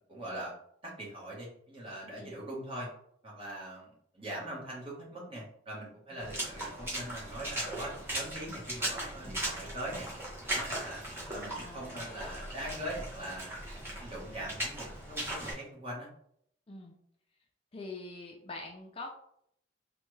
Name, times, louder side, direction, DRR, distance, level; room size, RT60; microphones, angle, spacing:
voice 1, 0.1-0.5 0.8-2.9 3.2-10.1 10.5-11.0 11.3-13.6 14.0-16.1, right 1 dB, 30° right, -5 dB, 1.1 m, -42 dB
Water / Splash splatter, 6.2-15.5, right 1 dB, 10° right, 0.8 m, -38 dB
voice 2, 11.6-12.1 16.7-17.0 17.7-19.1, left 2 dB, 30° left, 1 dB, 0.4 m, -45 dB
3.3 x 2.2 x 3.1 m, 0.69 s
head